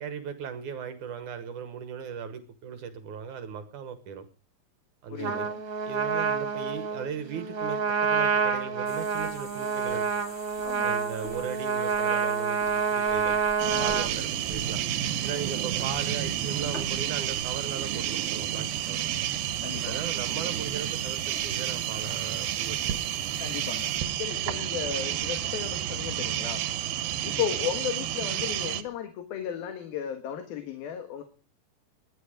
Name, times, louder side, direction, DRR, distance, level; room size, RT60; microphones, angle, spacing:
voice 1, 0.0-4.3 5.0-5.5 5.8-10.1 10.8-13.4 13.8-14.8 15.2-19.1 19.8-23.0 27.4-27.6, right 7 dB, 65° right, 10 dB, 2.4 m, -37 dB
voice 2, 5.1-5.6 10.6-10.9 13.7-13.9 19.6-20.0 23.4-26.6 27.2-31.2, left 9 dB, 85° left, 7 dB, 3.4 m, -35 dB
Trumpet, 5.2-14.1, right 6 dB, 45° right, 2.4 m, -28 dB
sound 1, 8.8-24.0, left 1 dB, 20° left, 2.3 m, -48 dB
sound 2, 13.6-28.8, right 11 dB, 85° right, 3.0 m, -30 dB
20.5 x 11.5 x 4.9 m, 0.37 s
omnidirectional pair, 4.1 m